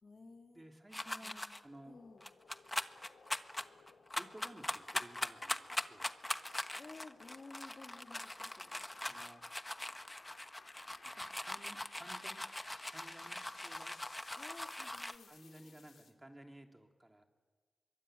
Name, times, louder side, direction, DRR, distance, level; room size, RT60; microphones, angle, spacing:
voice 1, 0.0-0.6 1.2-2.3 6.8-8.9 14.3-15.8, left 3 dB, 50° left, 4 dB, 2.7 m, -55 dB
voice 2, 0.5-2.0 4.1-6.1 9.0-9.4 11.1-12.4 12.8-14.0 15.3-17.2, right 1 dB, 20° right, 3 dB, 3.4 m, -56 dB
sound 1, 0.9-1.6 2.2-15.2, left 1 dB, 15° left, 1.2 m, -41 dB
sound 2, 1.5-16.1, left 5 dB, 80° left, 2.7 m, -63 dB
24.5 x 23.0 x 9.5 m, 1.5 s
cardioid pair, 55°, 0 cm